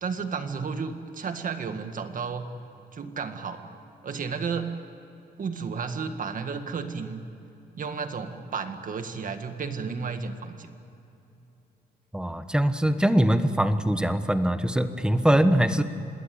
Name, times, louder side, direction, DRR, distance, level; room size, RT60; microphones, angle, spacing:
voice 1, 0.0-2.4 2.9-3.6 4.0-4.7 5.4-7.2 7.8-10.7, right 5 dB, 50° right, 7 dB, 1.9 m, -32 dB
voice 2, 12.1-15.8, right 1 dB, 5° right, 9 dB, 1.1 m, -22 dB
27.0 x 20.5 x 8.6 m, 2.9 s
wide cardioid pair, 155°, 17 cm